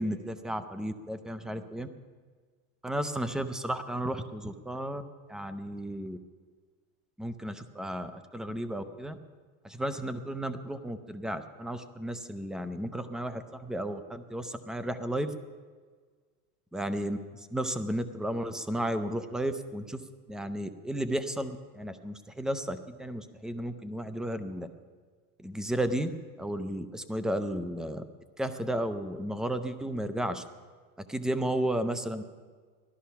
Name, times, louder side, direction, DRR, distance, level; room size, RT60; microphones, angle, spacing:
voice 1, 0.0-1.9 2.8-5.0 5.3-6.2 7.2-9.2 9.6-15.3 16.7-17.2 17.5-20.0 20.3-24.7 25.4-26.1 26.4-28.0 28.4-30.4 31.1-32.2, right 1 dB, ahead, 12 dB, 0.5 m, -33 dB
18.5 x 13.5 x 5.7 m, 1.5 s
supercardioid pair, 130°, 45 cm